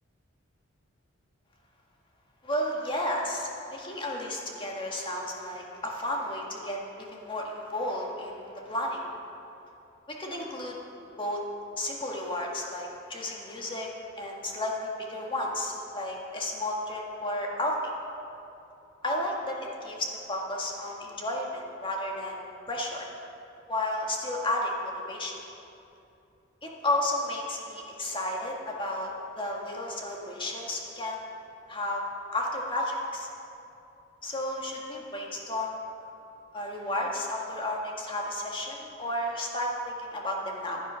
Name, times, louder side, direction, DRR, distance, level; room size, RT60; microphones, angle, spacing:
voice 1, 2.4-9.0 10.1-10.8 11.2-11.4 11.8-13.9 14.2-17.9 19.0-19.6 19.8-22.4 22.7-23.1 23.7-25.3 26.6-29.1 29.4-31.2 31.7-32.0 32.3-33.3 34.2-35.8 36.5-40.8, left 1 dB, 25° left, -1 dB, 1.8 m, -32 dB
15.5 x 10.0 x 5.7 m, 2.7 s
head